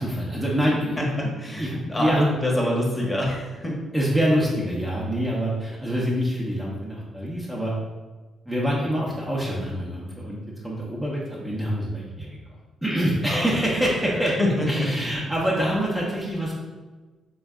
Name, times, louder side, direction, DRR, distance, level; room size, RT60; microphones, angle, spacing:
voice 1, 0.0-2.3 3.9-7.7 8.5-12.4 12.8-14.3 14.7-16.5, equal, 10° right, -5 dB, 0.7 m, -26 dB
voice 2, 1.0-3.8 13.3-13.5 14.0-14.9, left 1 dB, 15° left, -2 dB, 1.0 m, -26 dB
3.4 x 3.1 x 3.6 m, 1.3 s
cardioid pair, 90°, 0 cm